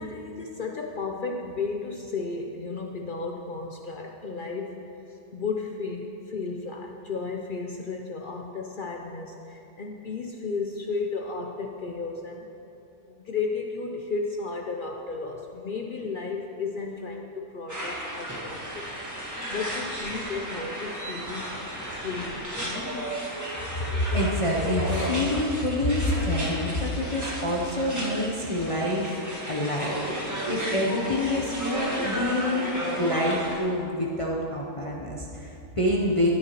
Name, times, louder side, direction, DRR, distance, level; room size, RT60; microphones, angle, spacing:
voice 1, 0.0-12.5 13.1-18.9 19.2-21.6 22.0-22.9, left 4 dB, 65° left, 2 dB, 0.5 m, -34 dB
sound 1, 17.7-33.6, right 1 dB, 10° right, 1.5 m, -33 dB
voice 2, 23.8-36.3, left 1 dB, 30° left, -3 dB, 0.7 m, -27 dB
15.0 x 9.4 x 3.0 m, 2.9 s
omnidirectional pair, 1.6 m